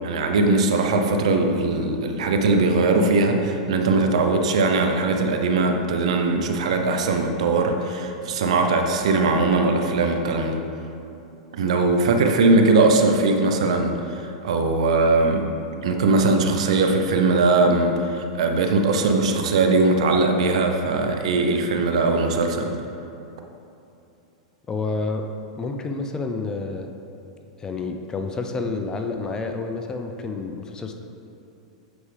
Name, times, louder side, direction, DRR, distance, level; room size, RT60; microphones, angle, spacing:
voice 1, 0.0-10.6 11.5-15.5 15.8-22.7, right 3 dB, 75° right, 4 dB, 0.7 m, -20 dB
voice 2, 24.7-25.2 25.6-26.9 27.6-30.9, left 3 dB, 20° left, 5 dB, 0.5 m, -29 dB
7.9 x 4.7 x 3.3 m, 2.8 s
hypercardioid pair, 115°, 3 cm